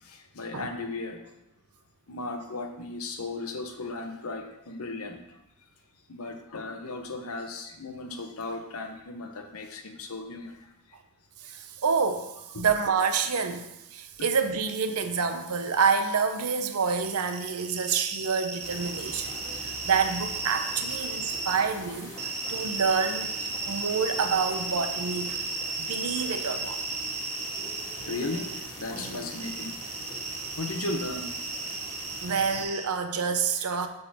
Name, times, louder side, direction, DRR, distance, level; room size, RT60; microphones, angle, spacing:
voice 1, 0.0-1.2 2.1-5.2 6.1-10.6 12.5-12.7 28.1-28.5 28.8-29.7 30.6-31.3 32.2-32.3, left 2 dB, 70° left, 5 dB, 0.9 m, -36 dB
voice 2, 11.5-23.3 23.7-25.5 25.8-26.8 32.2-33.9, right 5 dB, 75° right, 8 dB, 0.7 m, -28 dB
sound 1, 17.0-21.5 22.2-32.8, right 3 dB, 30° right, 0.8 m, -35 dB
sound 2, 18.6-32.6, equal, 15° left, 1.8 m, -43 dB
6.3 x 3.9 x 6.1 m, 0.90 s
head